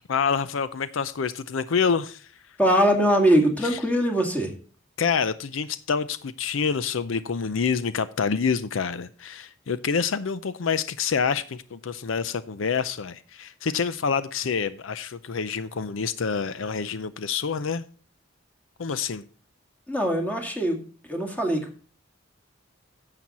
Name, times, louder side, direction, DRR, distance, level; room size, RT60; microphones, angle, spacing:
voice 1, 0.1-2.3 3.6-3.8 5.0-17.8 18.8-19.2, left 6 dB, 75° left, 0.5 m, -27 dB
voice 2, 2.6-4.5 19.9-20.8 21.1-21.9, equal, 10° left, 2.0 m, -22 dB
10.5 x 7.7 x 4.1 m
head